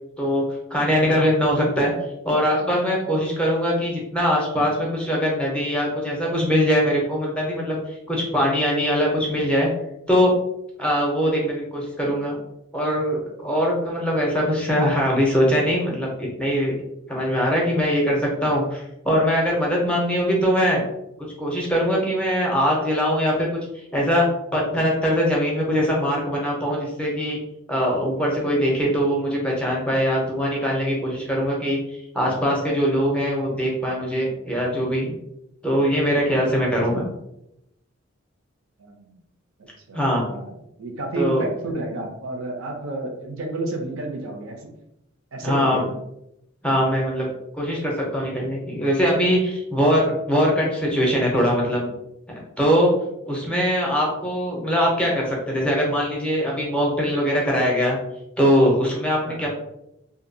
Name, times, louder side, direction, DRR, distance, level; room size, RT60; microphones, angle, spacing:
voice 1, 0.7-1.9 2.2-9.7 10.1-10.3 10.8-12.4 12.7-16.7 17.1-20.8 21.4-23.5 23.9-24.3 24.5-27.4 27.7-35.1 35.6-37.0 39.9-40.2 41.2-41.5 45.4-45.8 46.6-47.3 47.5-51.9 52.6-52.9 53.3-58.0 58.4-59.6, equal, 5° left, -2 dB, 0.5 m, -22 dB
voice 2, 38.8-39.2 39.6-40.0 40.3-40.5 40.8-44.6 45.3-45.9 49.9-50.1 59.2-59.5, right 2 dB, 75° right, 3 dB, 0.5 m, -31 dB
2.6 x 2.2 x 2.6 m, 0.82 s
head